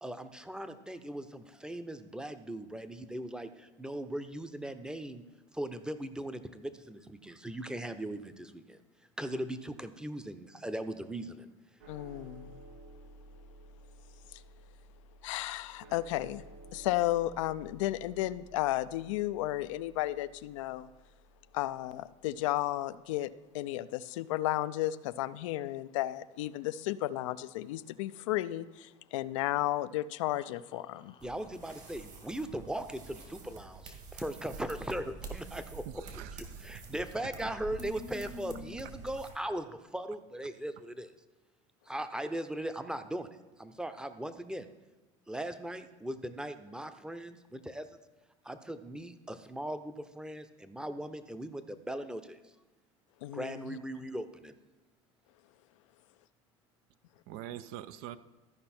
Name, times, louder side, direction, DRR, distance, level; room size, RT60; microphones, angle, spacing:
voice 1, 0.0-5.2 5.5-8.8 9.2-11.5 31.2-35.8 36.6-41.1 41.9-43.3 43.6-44.7 45.3-48.0 48.4-52.4 53.3-54.5, right 1 dB, 5° right, 10 dB, 0.7 m, -39 dB
sound 1, 11.8-22.2, right 1 dB, 85° right, 1.2 m, -54 dB
voice 2, 11.9-12.6 14.3-14.4 15.2-16.4 16.7-20.9 21.5-31.1 53.2-53.8, left 15 dB, 80° left, 14 dB, 0.4 m, -33 dB
sound 2, 30.3-33.7 36.5-36.9 37.3-37.4 37.8-38.8, left 6 dB, 35° left, 0.6 m, -52 dB
sound 3, 31.2-39.3, right 4 dB, 50° right, 2.1 m, -47 dB
voice 3, 35.9-36.6 37.4-37.5 57.3-58.2, right 12 dB, 65° right, 14 dB, 0.5 m, -44 dB
13.0 x 5.3 x 4.3 m, 1.2 s
hypercardioid pair, 90°, 16 cm